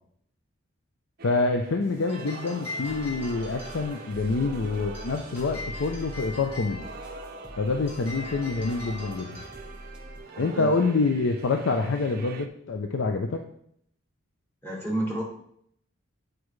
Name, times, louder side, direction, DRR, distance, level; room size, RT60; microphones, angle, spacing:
voice 1, 1.2-6.9 7.6-9.4 10.4-13.4, left 3 dB, 70° left, 4 dB, 0.5 m, -26 dB
sound 1, 1.2-12.5, right 4 dB, 45° right, 0.5 m, -44 dB
sound 2, 1.8-12.2, left 3 dB, 30° left, 2.0 m, -44 dB
sound 3, 2.8-10.2, right 1 dB, 5° right, 0.9 m, -44 dB
voice 2, 10.3-10.7 14.6-15.2, right 1 dB, 10° left, -3 dB, 1.6 m, -30 dB
8.3 x 4.8 x 3.2 m, 0.69 s
head